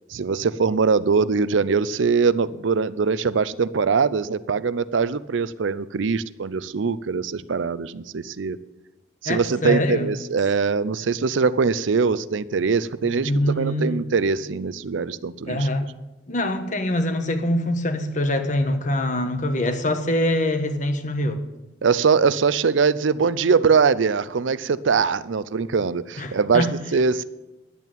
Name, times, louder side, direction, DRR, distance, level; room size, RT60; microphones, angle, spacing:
voice 1, 0.1-8.6 9.2-15.7 21.8-26.7 26.9-27.2, right 5 dB, 90° right, 17 dB, 0.5 m, -22 dB
voice 2, 9.2-10.1 13.0-14.0 15.5-15.9 16.3-21.4 26.2-26.7, left 1 dB, 40° left, 8 dB, 1.3 m, -24 dB
11.0 x 8.4 x 9.0 m, 1.0 s
head